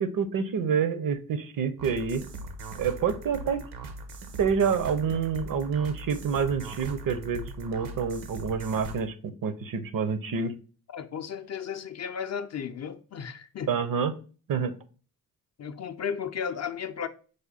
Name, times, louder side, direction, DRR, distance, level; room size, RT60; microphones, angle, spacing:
voice 1, 0.0-2.2 2.8-3.6 4.4-10.5 13.7-14.1 14.5-14.7, right 6 dB, 60° right, 0.7 m, -27 dB
sound 1, 1.8-9.0, right 2 dB, 80° right, 0.9 m, -40 dB
voice 2, 10.9-13.7 15.6-17.1, left 7 dB, 45° left, 0.5 m, -34 dB
4.9 x 2.2 x 4.1 m
supercardioid pair, 55°, 39 cm